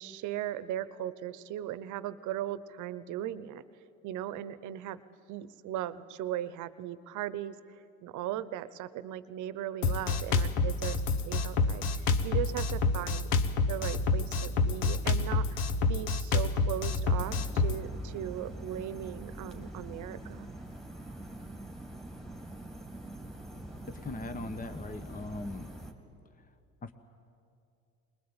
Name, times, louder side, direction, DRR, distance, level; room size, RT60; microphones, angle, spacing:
voice 1, 0.0-3.6 4.0-5.0 5.3-7.6 8.0-13.3 13.7-15.6 15.9-20.5, right 12 dB, 65° right, 16 dB, 0.9 m, -38 dB
Drum kit, 9.8-17.8, left 3 dB, 80° left, 1.2 m, -28 dB
sound 1, 17.2-25.9, right 1 dB, ahead, 2.6 m, -44 dB
voice 2, 23.9-25.7 26.8-26.9, left 2 dB, 25° left, 9 dB, 1.2 m, -39 dB
21.0 x 20.0 x 8.9 m, 2.5 s
supercardioid pair, 75°, 32 cm